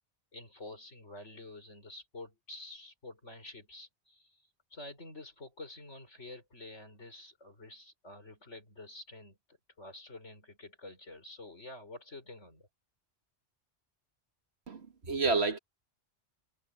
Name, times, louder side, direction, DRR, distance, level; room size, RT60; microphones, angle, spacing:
voice 1, 0.3-9.4 9.8-12.7, left 2 dB, 85° left, 5.5 m, -49 dB
voice 2, 14.7-15.6, right 4 dB, 65° right, 2.0 m, -30 dB
omnidirectional pair, 1.2 m